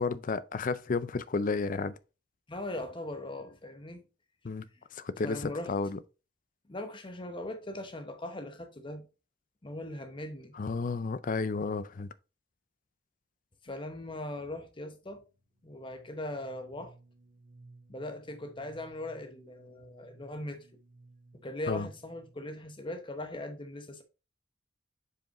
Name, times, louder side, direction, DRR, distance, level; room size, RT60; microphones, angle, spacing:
voice 1, 0.0-2.0 4.4-4.7 4.9-6.0 10.5-12.1 21.7-21.9, left 4 dB, 45° left, 0.5 m, -32 dB
voice 2, 2.5-4.0 5.2-5.7 6.7-9.0 9.6-10.5 13.6-15.2 15.6-16.9 17.9-20.7 21.3-24.0, left 1 dB, 25° left, 1.0 m, -40 dB
sound 1, 15.0-22.7, right 2 dB, 85° right, 1.4 m, -58 dB
7.5 x 4.9 x 3.0 m
head